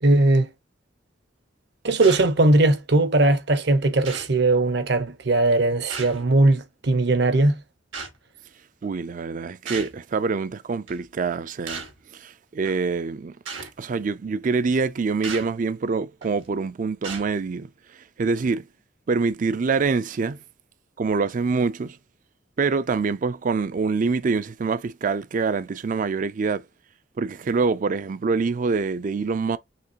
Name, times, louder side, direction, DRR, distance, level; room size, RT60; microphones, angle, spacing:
voice 1, 0.0-0.5 1.8-7.6, right 2 dB, 60° right, 0.9 m, -19 dB
sound 1, 2.0-2.4 3.2-3.3 4.0-4.4 5.9-6.3 7.9-8.2 9.7-10.0 10.9-11.0 11.7-12.0 12.7-12.8 13.5-13.7 15.2-15.5 16.2-16.5 17.0-17.3, right 5 dB, 85° right, 1.6 m, -35 dB
voice 2, 8.8-11.8 12.1-13.4 13.8-18.7 19.1-20.4 21.0-22.0 22.6-26.6 27.2-29.6, right 4 dB, 45° right, 0.4 m, -25 dB
5.9 x 2.8 x 2.8 m
head